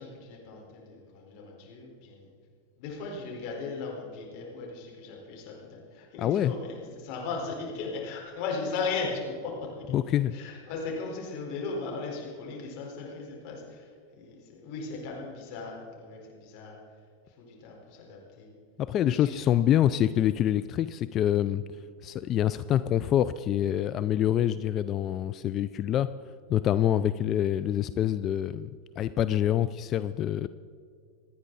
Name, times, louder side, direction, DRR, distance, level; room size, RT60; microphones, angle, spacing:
voice 1, 0.0-2.3 2.8-9.9 10.3-16.8 17.4-18.5 19.1-19.3, left 4 dB, 55° left, -2 dB, 4.4 m, -37 dB
voice 2, 6.2-6.5 9.9-10.3 18.8-21.6 22.0-26.1 26.5-28.7 29.0-30.5, left 11 dB, 40° left, 14 dB, 0.4 m, -26 dB
27.5 x 9.7 x 4.1 m, 2.2 s
hypercardioid pair, 105°, 0 cm